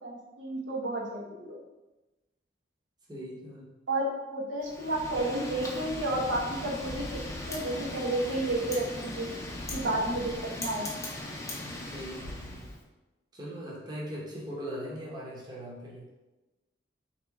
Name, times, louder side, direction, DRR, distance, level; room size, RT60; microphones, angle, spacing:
voice 1, 0.0-1.6 3.9-9.3 9.7-10.9, right 1 dB, 80° right, -2 dB, 1.0 m, -31 dB
voice 2, 3.1-3.7 10.1-10.2 11.6-12.7 13.3-16.1, equal, 20° right, -5 dB, 0.8 m, -40 dB
Wind, 4.6-12.8, left 1 dB, 15° left, 0.6 m, -39 dB
4.1 x 2.9 x 3.5 m, 1.1 s
head